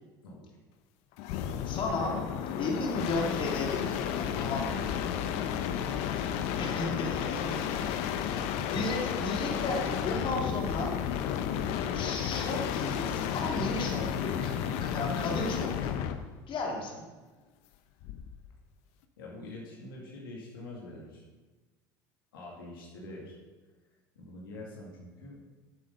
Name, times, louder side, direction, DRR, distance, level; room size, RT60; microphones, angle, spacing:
sound 1, 1.2-16.2 18.0-18.5, left 9 dB, 65° left, 0.9 m, -32 dB
voice 1, 1.6-2.2 2.6-4.9 6.5-7.9 8.7-10.9 11.9-16.0 16.5-17.0, left 2 dB, 45° left, -1 dB, 2.7 m, -34 dB
voice 2, 19.2-21.2 22.3-23.4 24.2-25.4, left 2 dB, 85° left, -3 dB, 2.4 m, -45 dB
11.0 x 7.6 x 5.4 m, 1.2 s
hypercardioid pair, 75°, 11 cm